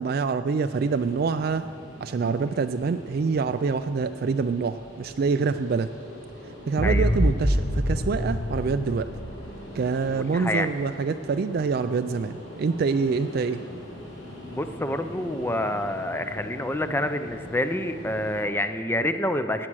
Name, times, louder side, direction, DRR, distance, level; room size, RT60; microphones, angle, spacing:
voice 1, 0.0-1.6 2.0-5.9 6.7-9.1 9.7-13.6, right 5 dB, 50° right, 10 dB, 0.3 m, -26 dB
sound 1, 0.6-18.4, left 1 dB, 80° left, 4.4 m, -42 dB
sound 2, 6.8-9.9, equal, 35° left, 1.3 m, -26 dB
voice 2, 6.8-7.2 10.1-10.7 14.4-19.7, left 1 dB, 10° left, 9 dB, 0.5 m, -28 dB
17.0 x 9.9 x 6.2 m, 2.4 s
head